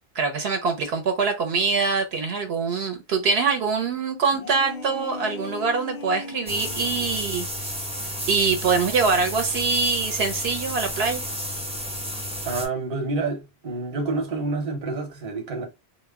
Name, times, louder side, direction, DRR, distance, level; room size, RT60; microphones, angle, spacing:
voice 1, 0.2-7.7 8.3-11.2, right 4 dB, 75° right, 0.8 m, -24 dB
sound 1, 4.3-7.2, left 3 dB, 55° left, 0.5 m, -38 dB
sound 2, 6.5-12.7, equal, 10° right, 0.3 m, -32 dB
voice 2, 12.4-15.6, right 3 dB, 45° right, 0.8 m, -28 dB
2.1 x 2.0 x 3.4 m
omnidirectional pair, 1.1 m